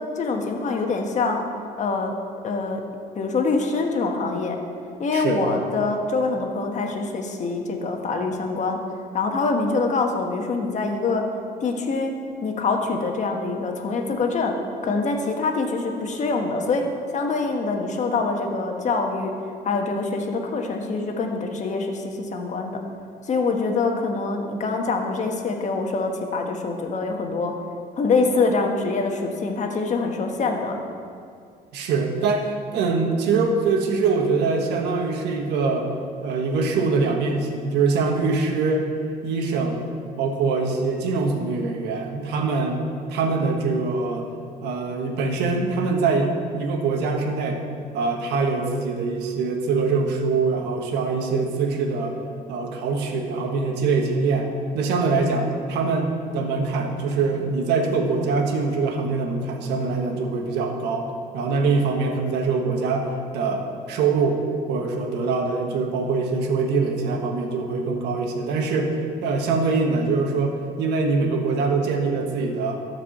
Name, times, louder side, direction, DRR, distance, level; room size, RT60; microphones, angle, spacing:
voice 1, 0.2-1.4 1.8-2.1 2.4-2.8 3.1-4.6 5.0-8.8 9.1-11.2 11.6-12.1 12.4-14.5 14.8-16.8 17.1-19.3 19.6-22.8 23.2-27.5 28.0-30.7, left 3 dB, 45° left, 3 dB, 1.4 m, -24 dB
voice 2, 31.7-35.9 36.2-38.9 39.2-39.8 40.2-42.8 43.1-44.3 44.6-47.6 47.9-52.2 52.5-56.1 56.3-61.1 61.3-64.4 64.7-68.9 69.2-72.8, right 4 dB, 85° right, 3 dB, 1.3 m, -23 dB
12.5 x 4.8 x 7.1 m, 2.3 s
cardioid pair, 110°, 17 cm